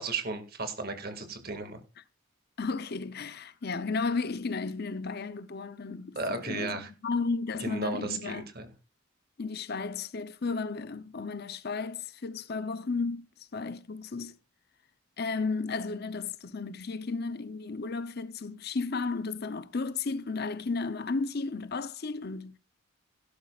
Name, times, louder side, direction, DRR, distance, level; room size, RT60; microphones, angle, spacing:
voice 1, 0.0-1.8 6.2-6.9 7.6-8.7, right 3 dB, 45° right, 2.1 m, -34 dB
voice 2, 2.6-8.5 9.4-14.4 15.2-22.6, left 4 dB, 50° left, 0.6 m, -34 dB
16.5 x 12.5 x 2.4 m
head